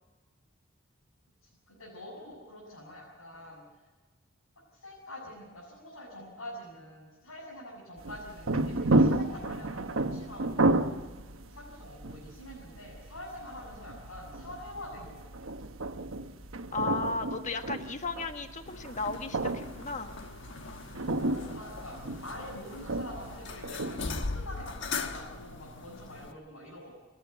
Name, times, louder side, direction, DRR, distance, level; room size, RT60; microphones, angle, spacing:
voice 1, 1.7-3.6 4.7-10.7 11.5-15.2 21.2-26.9, left 1 dB, 85° left, -5 dB, 7.0 m, -45 dB
sound 1, 8.0-24.2, right 2 dB, 75° right, 1.1 m, -32 dB
voice 2, 16.7-20.1, left 3 dB, 35° left, 6 dB, 1.3 m, -34 dB
sound 2, 18.7-26.3, left 4 dB, 60° left, 1.3 m, -40 dB
29.5 x 11.0 x 8.1 m, 1.3 s
head